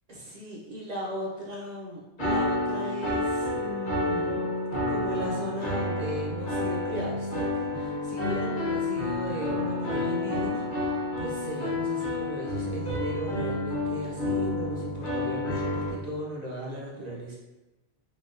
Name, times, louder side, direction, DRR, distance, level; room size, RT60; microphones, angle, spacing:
voice 1, 0.1-4.4 4.9-17.4, equal, 50° right, -3 dB, 0.5 m, -37 dB
sound 1, 2.2-15.9, left 2 dB, 45° left, 1.0 m, -29 dB
3.9 x 2.2 x 2.4 m, 1.0 s
omnidirectional pair, 1.2 m